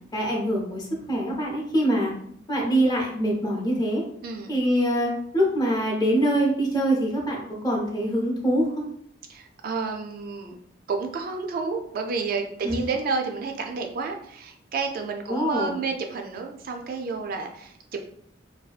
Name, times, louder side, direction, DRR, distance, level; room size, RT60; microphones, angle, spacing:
voice 1, 0.1-2.1 2.5-4.0 4.5-8.8 12.6-12.8 15.3-15.8, right 1 dB, 20° left, -1 dB, 0.6 m, -24 dB
voice 2, 4.2-4.5 9.3-10.6 10.9-18.0, right 4 dB, 50° right, 4 dB, 0.3 m, -30 dB
2.6 x 2.2 x 2.3 m, 0.67 s
head